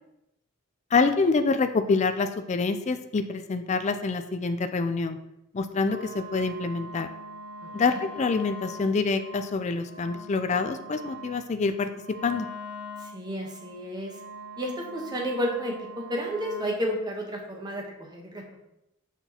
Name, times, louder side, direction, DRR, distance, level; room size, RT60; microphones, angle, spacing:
voice 1, 0.9-5.2 5.5-7.1 7.7-11.9 12.2-12.5, left 4 dB, 35° left, 9 dB, 0.4 m, -26 dB
Wind instrument woodwind instrument, 5.8-16.8, equal, 65° right, 2.6 m, -43 dB
voice 2, 13.0-14.2 14.6-18.6, equal, 20° right, 0 dB, 1.0 m, -32 dB
6.8 x 5.9 x 2.9 m, 0.84 s
head